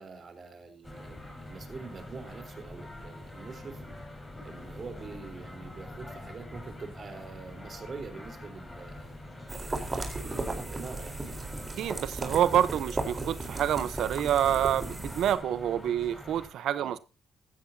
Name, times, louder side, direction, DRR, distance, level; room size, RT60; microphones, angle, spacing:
voice 1, 0.0-3.8 4.4-9.7 10.2-11.2 16.8-16.9, right 4 dB, 45° right, 3.9 m, -45 dB
sound 1, 0.8-16.5, left 1 dB, 15° left, 6.1 m, -45 dB
sound 2, 9.5-15.3, right 2 dB, 25° right, 4.0 m, -36 dB
voice 2, 11.8-17.0, right 10 dB, 75° right, 0.9 m, -27 dB
15.0 x 13.5 x 2.8 m
cardioid pair, 90°, 0 cm